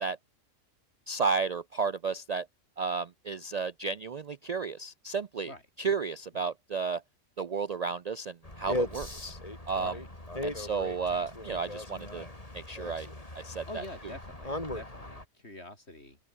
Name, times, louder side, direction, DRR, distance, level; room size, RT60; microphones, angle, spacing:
voice 1, 1.1-2.5 2.8-5.5 5.8-7.0 7.4-9.4 9.7-9.9 10.4-12.3 12.5-13.1 13.4-13.6, right 5 dB, 80° right, 0.3 m, -32 dB
sound 1, 8.4-15.2, left 1 dB, 25° left, 4.1 m, -38 dB
voice 2, 9.8-10.1 10.4-10.7 13.7-16.2, left 1 dB, 50° left, 6.7 m, -46 dB
open air
omnidirectional pair, 1.4 m